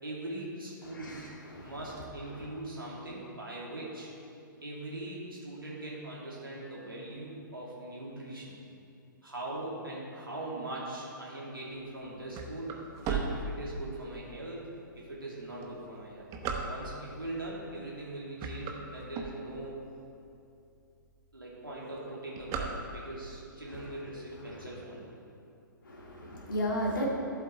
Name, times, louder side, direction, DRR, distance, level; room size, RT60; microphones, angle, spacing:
voice 1, 0.0-1.2 1.6-4.1 4.6-8.6 9.2-12.8 13.0-14.6 14.9-16.3 16.6-19.8 21.3-25.1, right 1 dB, 85° right, -6 dB, 2.7 m, -41 dB
voice 2, 0.9-1.8 23.7-23.8 24.6-24.7 25.8-27.1, equal, 70° left, -3 dB, 2.2 m, -35 dB
sound 1, 12.0-14.1 14.7-14.8 15.5-17.2 17.8-18.0 18.3-19.8 20.3-20.4 20.7-20.8 21.1-21.4 21.7-23.3, right 5 dB, 25° right, 1.1 m, -36 dB
14.0 x 7.8 x 4.5 m, 2.6 s
figure-of-eight pair, 120°, 11 cm